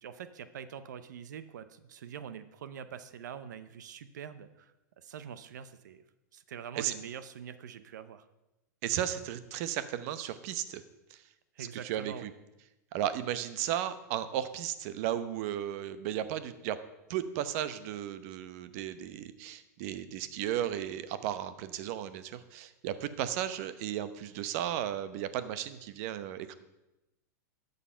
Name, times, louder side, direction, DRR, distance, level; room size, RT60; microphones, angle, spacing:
voice 1, 0.0-4.7 5.0-6.0 6.3-8.2 11.6-12.3, right 8 dB, 85° right, 13 dB, 0.8 m, -44 dB
voice 2, 8.8-10.8 11.1-11.2 11.6-12.3 12.9-16.8 17.1-26.5, right 11 dB, 55° right, 12 dB, 0.9 m, -35 dB
12.5 x 6.8 x 5.7 m, 0.97 s
hypercardioid pair, 130°, 10 cm